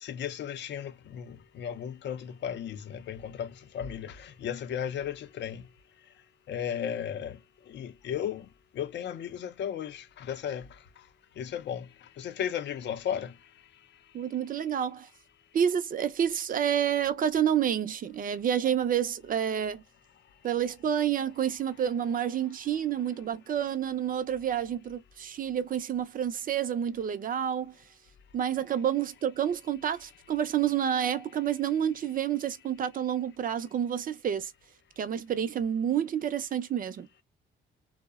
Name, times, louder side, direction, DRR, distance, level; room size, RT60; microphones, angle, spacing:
voice 1, 0.0-5.6 6.5-7.4 7.7-8.5 8.8-10.7 11.4-11.9 12.2-13.3, left 9 dB, 65° left, 0.5 m, -35 dB
voice 2, 14.1-15.1 15.5-19.8 20.4-27.7 28.3-34.5 35.0-37.1, right 9 dB, 45° right, 0.5 m, -29 dB
2.7 x 2.1 x 2.2 m
cardioid pair, 90°, 20 cm